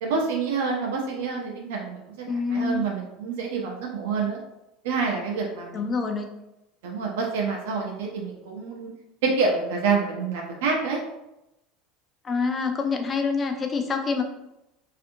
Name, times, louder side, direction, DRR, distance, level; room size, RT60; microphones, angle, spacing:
voice 1, 0.0-2.2 2.5-4.4 4.8-5.8 6.8-8.9 9.2-11.0, right 4 dB, 85° right, -1 dB, 0.5 m, -27 dB
voice 2, 2.3-2.8 5.7-6.3 12.2-14.2, left 4 dB, 20° left, 4 dB, 0.4 m, -26 dB
2.6 x 2.5 x 2.5 m, 0.89 s
supercardioid pair, 135°, 0 cm